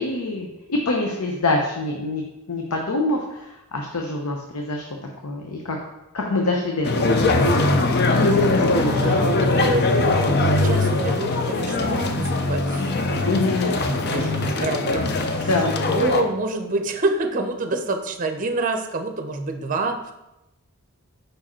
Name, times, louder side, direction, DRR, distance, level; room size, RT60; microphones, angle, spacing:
voice 1, 0.0-2.2 2.5-4.9 5.2-5.9 6.1-7.1 8.1-9.3 13.2-13.7 15.3-15.8, left 2 dB, 90° left, 1 dB, 0.7 m, -25 dB
sound 1, 6.8-16.2, left 2 dB, 45° left, 0.5 m, -21 dB
voice 2, 8.7-13.4 13.8-15.5 15.8-20.1, right 2 dB, 35° right, 5 dB, 0.6 m, -27 dB
5.0 x 4.8 x 4.3 m, 0.92 s
head